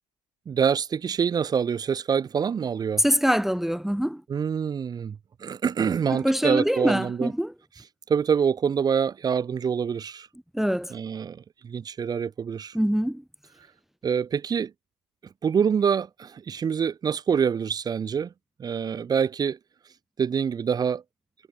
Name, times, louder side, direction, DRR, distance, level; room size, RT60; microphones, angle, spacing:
voice 1, 0.5-3.0 4.3-5.2 5.4-7.3 8.1-10.3 10.9-12.7 14.0-14.7 15.4-18.3 18.6-19.6 20.2-21.0, right 7 dB, 20° right, 1.3 m, -25 dB
voice 2, 3.0-4.2 6.1-7.5 10.5-10.9 12.7-13.2, equal, ahead, 1.2 m, -24 dB
supercardioid pair, 130°, 18 cm